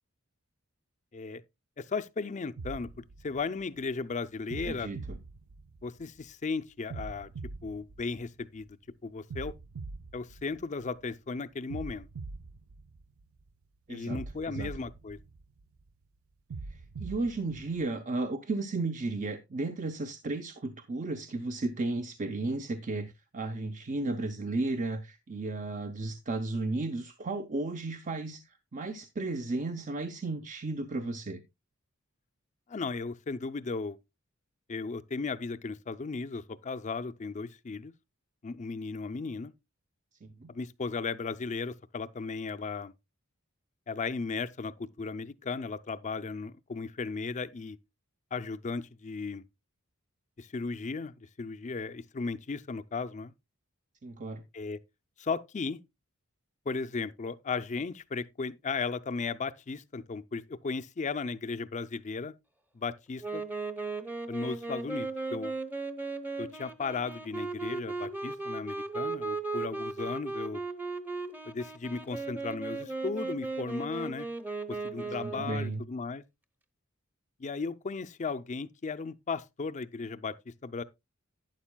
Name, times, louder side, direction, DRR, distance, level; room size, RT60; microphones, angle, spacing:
voice 1, 1.8-2.9 3.2-4.9 5.8-7.3 7.6-8.7 9.0-9.5 10.1-12.1 13.9-15.2 32.7-34.0 34.7-37.9 38.4-39.5 40.5-42.9 43.9-47.8 48.3-49.4 50.4-53.3 54.5-54.8 55.2-55.8 56.7-62.3 62.7-63.4 64.3-65.5 66.4-70.6 71.5-74.3 74.7-76.2 77.4-80.8, left 4 dB, 35° left, 0.5 m, -36 dB
sound 1, 2.6-3.9 4.5-6.2 6.9-8.7 9.3-11.1 11.7-13.5 14.1-15.8 16.5-17.9, right 3 dB, 75° right, 0.5 m, -43 dB
voice 2, 4.6-5.2 13.9-14.2 14.5-14.7 16.7-31.4 40.2-40.5 54.0-54.4 75.0-75.8, right 2 dB, 35° right, 0.6 m, -34 dB
Wind instrument woodwind instrument, 63.2-75.7, right 3 dB, 10° right, 0.8 m, -36 dB
11.5 x 9.4 x 2.2 m
head